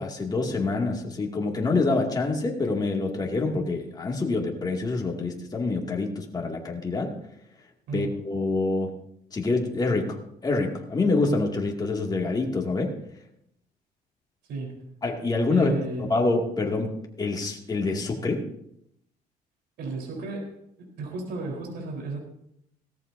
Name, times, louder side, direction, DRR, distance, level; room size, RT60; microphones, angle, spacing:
voice 1, 0.0-7.1 7.9-8.9 9.3-13.0 15.0-15.7 16.0-18.4, left 3 dB, 25° left, 0 dB, 2.3 m, -26 dB
voice 2, 15.5-16.1 19.8-22.2, right 3 dB, 75° right, 0 dB, 4.1 m, -34 dB
18.0 x 14.0 x 2.7 m, 0.75 s
cardioid pair, 110°, 17 cm